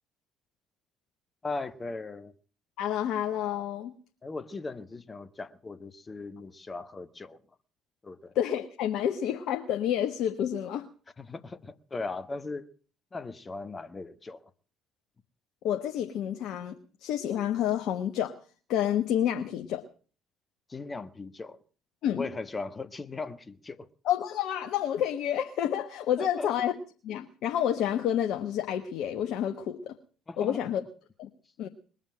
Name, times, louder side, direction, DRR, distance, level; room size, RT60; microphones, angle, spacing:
voice 1, 1.4-2.3 4.2-7.4 8.0-8.3 11.2-12.7 13.1-14.5 20.7-21.6 22.1-23.9 26.2-26.5 30.3-30.6, left 3 dB, 25° left, 1.3 m, -38 dB
voice 2, 2.8-3.9 8.3-10.9 15.6-18.3 18.7-19.9 22.0-22.2 24.0-26.7 27.0-30.0 30.4-30.8 31.2-31.3 31.6-31.7, left 10 dB, 60° left, 1.1 m, -29 dB
21.0 x 7.3 x 8.8 m
hypercardioid pair, 55°, 0 cm